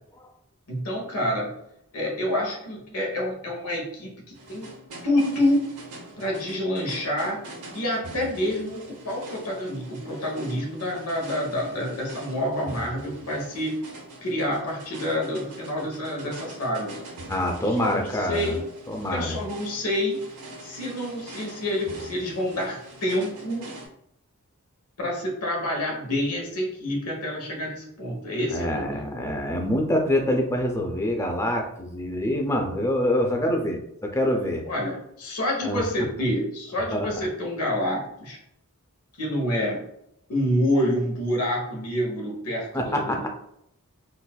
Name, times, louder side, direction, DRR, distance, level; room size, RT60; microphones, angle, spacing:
voice 1, 0.7-1.6 1.9-4.2 4.5-4.7 5.0-5.7 6.2-7.4 7.7-13.9 14.2-16.9 17.6-18.6 19.1-20.2 20.6-23.7 25.0-29.0 34.7-38.4 39.2-39.9 40.3-43.3, left 1 dB, 90° left, -1 dB, 1.0 m, -28 dB
sound 1, 4.3-23.9, right 1 dB, 90° right, 0.8 m, -44 dB
voice 2, 17.3-18.6 18.9-19.4 28.5-34.6 35.6-35.8 36.9-37.3 42.7-43.3, left 1 dB, 15° left, 2 dB, 0.4 m, -26 dB
3.9 x 2.4 x 2.2 m, 0.76 s
head